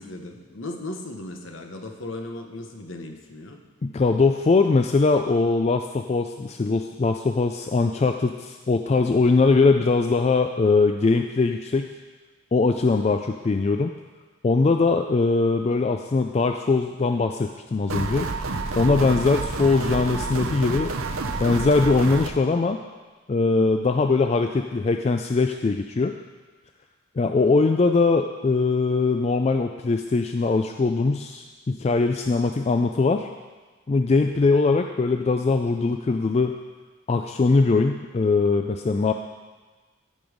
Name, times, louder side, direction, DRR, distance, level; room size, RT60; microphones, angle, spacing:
voice 1, 0.0-3.6 18.8-19.2, left 2 dB, 65° left, 3 dB, 1.2 m, -36 dB
voice 2, 3.8-11.9 12.5-13.9 14.4-18.3 18.8-20.9 21.4-22.8 23.3-26.1 27.2-33.3 33.9-36.5 37.1-39.1, left 3 dB, 30° left, 6 dB, 0.3 m, -21 dB
sound 1, 17.9-22.3, right 3 dB, 85° right, 0.8 m, -29 dB
15.5 x 5.4 x 5.1 m, 1.3 s
head